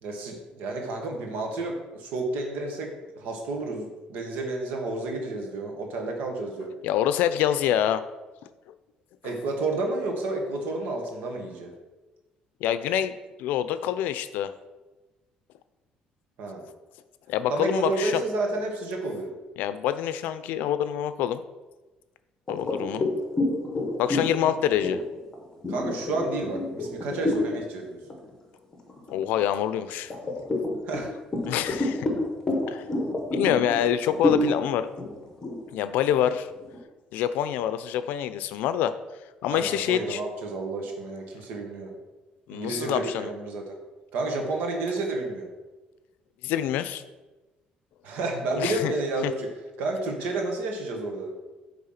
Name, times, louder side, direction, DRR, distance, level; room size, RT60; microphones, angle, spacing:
voice 1, 0.0-6.7 9.2-11.7 16.4-16.7 17.5-19.3 25.7-28.0 30.9-31.1 39.5-41.9 42.5-43.7 44.1-45.5 48.0-49.5 49.8-51.3, right 2 dB, 75° right, 2 dB, 1.6 m, -30 dB
voice 2, 6.8-8.0 12.6-13.1 13.4-14.5 17.3-18.2 19.6-21.4 22.5-23.1 24.0-25.0 29.1-30.4 31.5-32.1 32.7-32.8 33.3-34.9 35.7-36.5 37.1-38.9 39.4-40.2 42.5-43.3 46.4-47.0 48.6-48.9 49.2-49.3, left 10 dB, 80° left, 12 dB, 0.5 m, -26 dB
sound 1, 22.5-27.6 28.0-28.3 28.7-29.5 30.1-36.8, left 2 dB, 20° left, 1.2 m, -29 dB
8.7 x 3.6 x 5.7 m, 1.2 s
cardioid pair, 170°, 3 cm